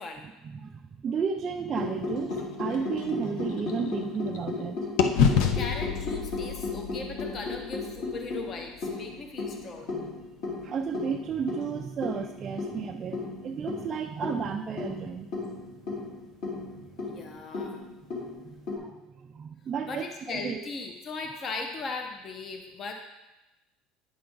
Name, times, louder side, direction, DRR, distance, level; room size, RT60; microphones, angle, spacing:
voice 1, 0.4-4.8 10.6-15.3 15.9-16.0 16.5-16.6 17.2-17.3 18.4-20.1 20.3-20.6, right 6 dB, 25° right, 4 dB, 0.3 m, -33 dB
sound 1, 1.7-18.8, left 3 dB, 50° left, 2.4 m, -35 dB
sound 2, 2.3-4.6 5.0-9.0, left 7 dB, 70° left, 0.7 m, -29 dB
voice 2, 5.5-9.9 17.1-17.8 19.8-22.9, left 3 dB, 30° left, 4 dB, 0.7 m, -38 dB
9.5 x 5.7 x 3.9 m, 1.0 s
cardioid pair, 170°, 0 cm